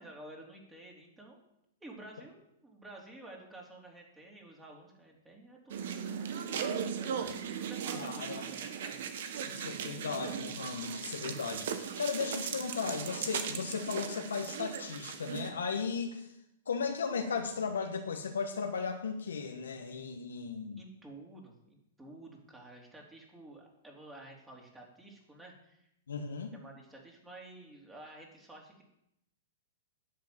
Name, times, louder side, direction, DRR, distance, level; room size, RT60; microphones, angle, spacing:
voice 1, 0.0-1.4 1.8-6.7 7.2-9.0 20.8-25.9 26.5-28.8, right 2 dB, 10° right, -1 dB, 3.8 m, -51 dB
sound 1, 5.7-15.5, right 7 dB, 65° right, 1.6 m, -38 dB
voice 2, 7.9-8.4 9.4-16.3 16.7-20.8 26.1-26.5, left 5 dB, 90° left, 3 dB, 1.5 m, -36 dB
10.0 x 8.5 x 8.0 m, 0.80 s
hypercardioid pair, 130°, 0 cm